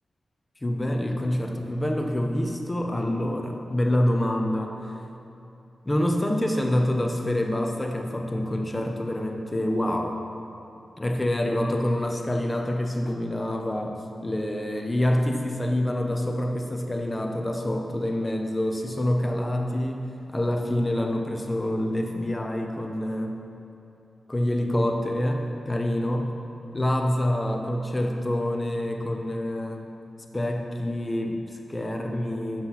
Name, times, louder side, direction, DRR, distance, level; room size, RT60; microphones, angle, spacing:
voice 1, 0.6-4.9 5.8-10.2 11.0-23.4 24.3-26.4 26.7-29.9 30.3-32.7, left 1 dB, 15° left, 2 dB, 0.9 m, -26 dB
8.6 x 6.2 x 5.7 m, 2.8 s
wide cardioid pair, 120°, 0 cm